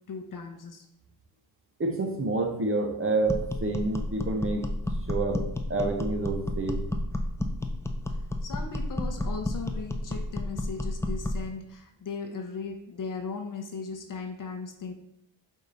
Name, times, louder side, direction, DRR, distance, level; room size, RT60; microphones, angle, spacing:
voice 1, 0.1-0.9 8.4-14.9, left 5 dB, 40° left, 5 dB, 0.7 m, -37 dB
voice 2, 1.8-4.7 5.1-6.8, right 2 dB, 25° right, 3 dB, 0.7 m, -28 dB
sound 1, 3.3-11.5, left 1 dB, 5° left, 0.3 m, -31 dB
4.6 x 2.7 x 4.0 m, 0.76 s
cardioid pair, 70°, 48 cm